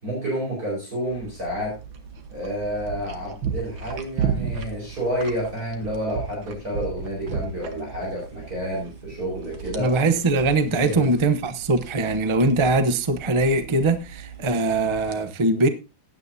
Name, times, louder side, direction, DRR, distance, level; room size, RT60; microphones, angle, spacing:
voice 1, 0.0-1.8 2.3-9.9 10.6-11.0, equal, 45° right, 5.5 m, -29 dB
sound 1, 1.1-15.2, right 6 dB, 80° right, 2.0 m, -35 dB
voice 2, 9.8-15.7, right 2 dB, 30° right, 0.5 m, -21 dB
15.5 x 9.8 x 2.7 m
omnidirectional pair, 2.1 m